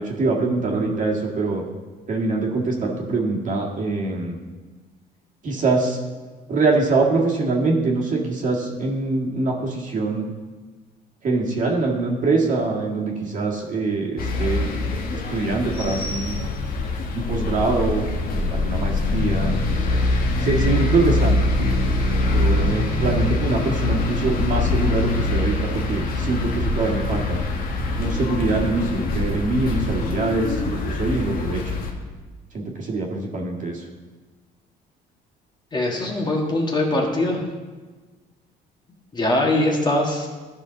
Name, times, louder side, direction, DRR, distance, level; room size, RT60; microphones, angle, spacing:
voice 1, 0.0-1.6 2.1-4.4 5.4-6.0 6.5-10.3 11.2-14.7 15.3-16.4 17.2-19.5 20.4-21.8 22.0-27.4 28.0-31.7 32.5-33.9, right 3 dB, 50° right, -1 dB, 1.8 m, -24 dB
sound 1, 14.2-31.9, left 2 dB, 60° left, 1.3 m, -23 dB
voice 2, 35.7-37.4 39.1-40.3, left 1 dB, 25° left, 0 dB, 1.6 m, -22 dB
13.0 x 5.6 x 3.9 m, 1.3 s
cardioid pair, 110°, 17 cm